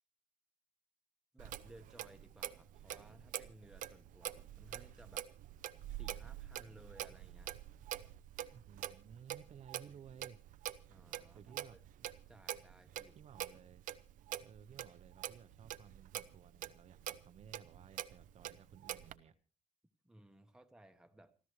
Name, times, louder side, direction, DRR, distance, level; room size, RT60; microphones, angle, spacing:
voice 1, 1.3-5.3 5.9-7.5 10.9-13.2 20.0-21.3, right 1 dB, 5° right, 6 dB, 1.2 m, -60 dB
Clock, 1.4-19.2, right 12 dB, 80° right, 0.8 m, -46 dB
voice 2, 8.5-10.4 11.3-11.8 13.2-13.8 14.4-19.3, right 8 dB, 55° right, 9 dB, 0.9 m, -57 dB
29.0 x 13.0 x 3.2 m, 0.37 s
cardioid pair, 140°, 13 cm